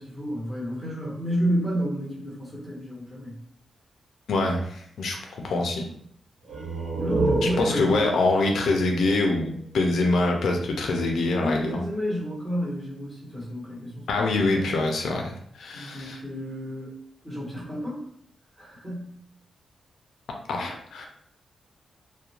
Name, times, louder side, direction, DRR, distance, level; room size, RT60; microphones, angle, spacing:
voice 1, 0.0-3.4 7.0-8.0 11.3-14.7 15.7-16.9 17.2-18.0 18.6-19.2, equal, ahead, -6 dB, 1.0 m, -31 dB
voice 2, 4.3-5.9 7.4-11.8 14.1-16.2 20.5-21.1, left 2 dB, 80° left, 2 dB, 0.4 m, -25 dB
sound 1, 6.4-10.0, right 2 dB, 80° right, 0.9 m, -30 dB
2.4 x 2.1 x 2.9 m, 0.67 s
wide cardioid pair, 145°, 0 cm